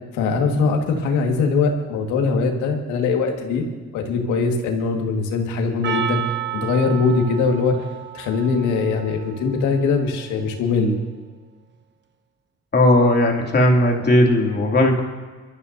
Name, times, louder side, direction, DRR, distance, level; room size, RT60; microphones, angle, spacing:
voice 1, 0.1-3.6 3.9-6.2 6.5-7.8 8.1-11.0, left 4 dB, 90° left, 3 dB, 1.9 m, -21 dB
Percussion, 5.8-10.4, right 10 dB, 40° right, 1.0 m, -32 dB
voice 2, 12.7-15.0, left 1 dB, 35° left, 0 dB, 2.7 m, -16 dB
22.5 x 13.0 x 2.7 m, 1.4 s
cardioid pair, 90°, 29 cm